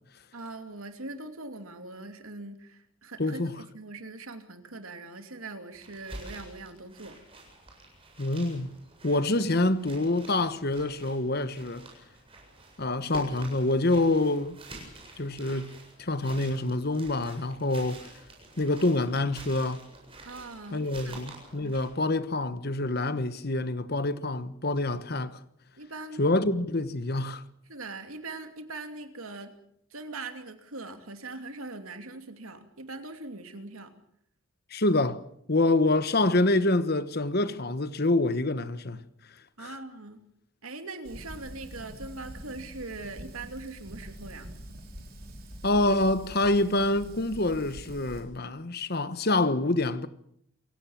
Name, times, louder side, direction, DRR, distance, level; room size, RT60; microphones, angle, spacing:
voice 1, 0.3-7.2 20.2-21.3 25.8-26.2 27.7-29.6 29.9-33.9 39.6-40.2 40.6-44.5, right 2 dB, 85° right, 2.8 m, -41 dB
voice 2, 3.2-3.5 8.2-8.7 9.0-11.8 12.8-14.6 15.2-15.7 16.0-18.0 18.6-19.8 20.7-25.4 26.2-27.4 34.7-35.2 35.5-39.0 39.6-39.7 45.6-50.1, left 2 dB, 45° left, 1.2 m, -26 dB
sound 1, 5.7-21.9, right 2 dB, 25° right, 7.8 m, -48 dB
Fire, 41.0-48.2, equal, 45° right, 5.0 m, -45 dB
28.5 x 17.0 x 7.3 m
head